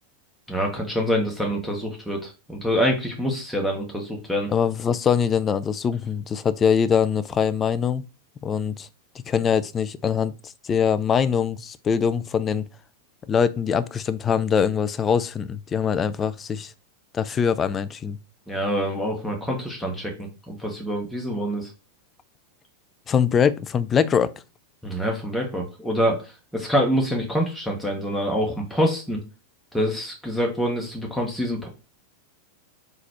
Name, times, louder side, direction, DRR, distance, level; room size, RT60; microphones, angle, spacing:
voice 1, 0.5-4.5 18.5-21.7 24.8-26.2 26.5-29.2 29.7-31.7, equal, ahead, 1.0 m, -26 dB
voice 2, 4.5-8.0 8.4-8.9 9.3-12.6 13.3-16.7 17.1-18.2 23.1-24.3, left 7 dB, 25° left, 0.3 m, -23 dB
4.0 x 2.4 x 4.2 m
figure-of-eight pair, 90°, 0 cm